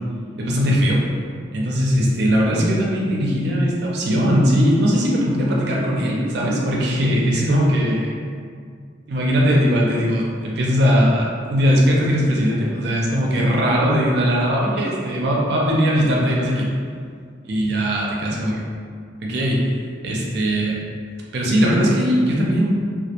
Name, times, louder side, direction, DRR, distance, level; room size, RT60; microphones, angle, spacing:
voice 1, 0.4-1.0 1.5-8.2 9.1-16.7 17.4-18.7 19.2-19.7 20.0-20.8 21.3-22.7, equal, 60° right, -3 dB, 0.4 m, -19 dB
2.2 x 2.1 x 2.8 m, 2.1 s
head